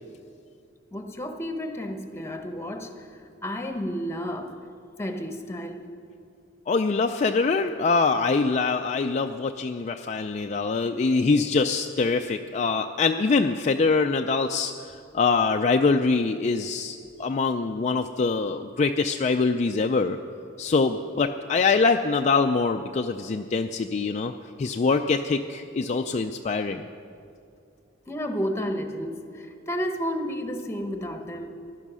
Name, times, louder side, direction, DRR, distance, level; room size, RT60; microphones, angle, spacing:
voice 1, 0.9-4.5 5.0-5.9 28.1-31.5, equal, 15° left, 5 dB, 1.1 m, -32 dB
voice 2, 6.7-20.2 20.6-24.3 24.6-26.8, left 4 dB, 40° left, 5 dB, 0.4 m, -24 dB
15.5 x 11.5 x 6.2 m, 2.4 s
head